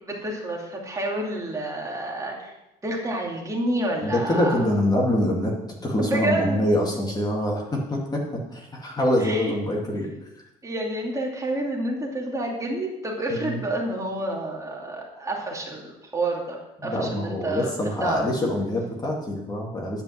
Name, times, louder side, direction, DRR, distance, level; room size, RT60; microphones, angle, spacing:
voice 1, 0.0-2.5 2.8-4.7 6.0-6.6 9.2-9.5 10.6-17.7 18.0-18.2, right 1 dB, 20° right, -1 dB, 2.7 m, -29 dB
voice 2, 4.0-5.5 5.8-10.1 13.3-13.6 16.8-20.0, left 1 dB, 25° left, -1 dB, 2.3 m, -25 dB
10.5 x 5.2 x 7.8 m, 0.91 s
cardioid pair, 110°, 17 cm